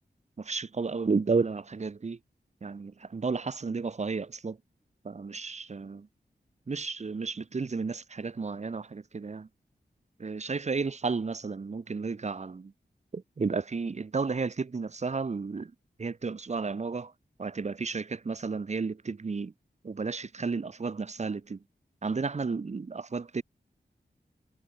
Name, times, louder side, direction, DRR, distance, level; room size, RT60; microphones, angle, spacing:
voice 1, 0.4-2.2 2.6-4.6 5.0-6.1 6.7-9.5 10.2-12.7 13.1-15.7 16.0-17.1 17.4-19.5 19.8-21.6 22.0-23.4, right 4 dB, 40° right, 0.8 m, -32 dB
wide cardioid pair, 110°, 18 cm